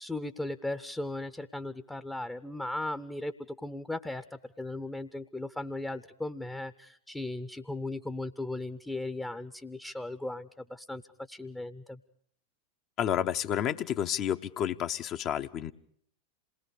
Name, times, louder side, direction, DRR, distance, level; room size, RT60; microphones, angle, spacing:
voice 1, 0.0-11.0 11.3-12.0, left 2 dB, 5° left, 10 dB, 0.8 m, -37 dB
voice 2, 13.0-15.7, left 10 dB, 35° left, 8 dB, 0.8 m, -30 dB
27.5 x 20.0 x 4.9 m, 0.63 s
figure-of-eight pair, 90°, 0 cm